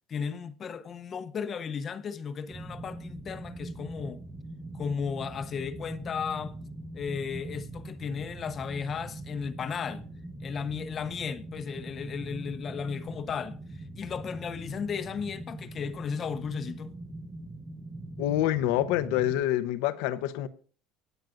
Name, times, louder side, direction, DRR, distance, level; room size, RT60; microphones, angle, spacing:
voice 1, 0.1-4.2 4.7-6.6 6.9-10.1 10.4-16.9, left 6 dB, 30° left, 0.7 m, -35 dB
sound 1, 2.5-19.4, right 1 dB, 10° right, 1.4 m, -42 dB
voice 2, 18.2-20.5, left 13 dB, 85° left, 0.8 m, -26 dB
24.5 x 9.1 x 2.6 m
cardioid pair, 145°, 0 cm